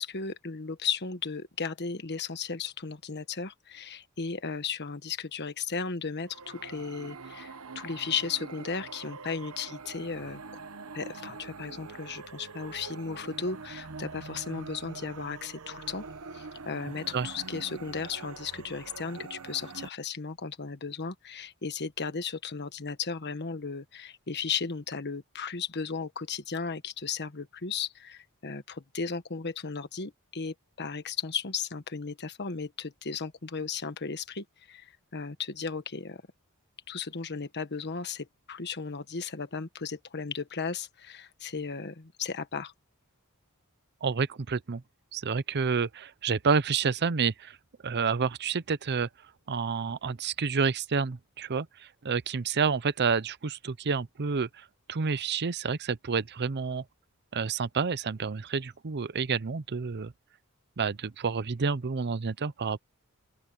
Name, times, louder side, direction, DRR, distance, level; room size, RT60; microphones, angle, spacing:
voice 1, 0.0-10.4 10.9-16.0 16.3-36.2 36.9-42.7, left 5 dB, 50° left, 1.4 m, -35 dB
sound 1, 6.2-19.9, right 4 dB, 75° right, 1.0 m, -44 dB
voice 2, 44.0-44.8 45.1-47.6 47.8-49.1 49.5-56.8 57.3-60.1 60.8-62.8, right 5 dB, 50° right, 0.6 m, -29 dB
open air
head